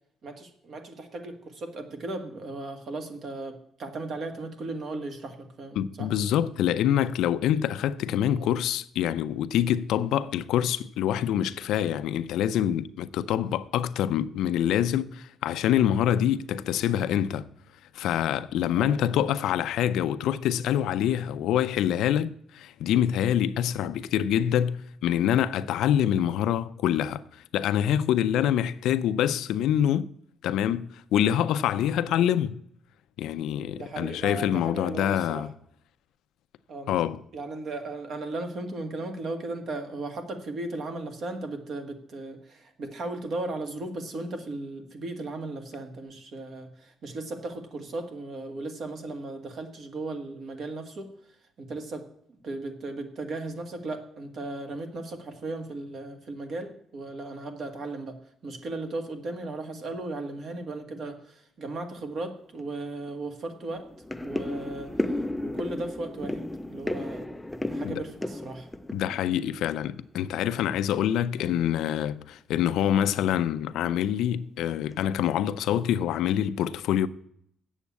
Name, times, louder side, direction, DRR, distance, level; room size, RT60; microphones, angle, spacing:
voice 1, 0.2-6.1 8.3-8.5 18.7-19.0 32.1-32.3 33.8-35.5 36.7-37.0 37.3-58.2 58.4-63.9 64.2-66.4 66.7-67.3 67.7-68.7 71.4-71.6, right 2 dB, 50° right, 1.7 m, -36 dB
voice 2, 5.8-17.5 17.9-30.1 30.4-32.6 33.2-35.5 36.9-37.2 67.8-68.0 68.9-77.1, left 10 dB, 85° left, 0.5 m, -26 dB
sound 1, 62.6-62.7 63.1-63.2 63.6-70.2 70.4-71.0 71.4-71.6 71.9-72.0 72.5-72.7 73.0-73.2 73.7-74.2 74.8-74.9 75.2-75.9 76.3-76.4, left 1 dB, 5° left, 0.4 m, -34 dB
8.2 x 7.2 x 8.5 m
cardioid pair, 145°, 0 cm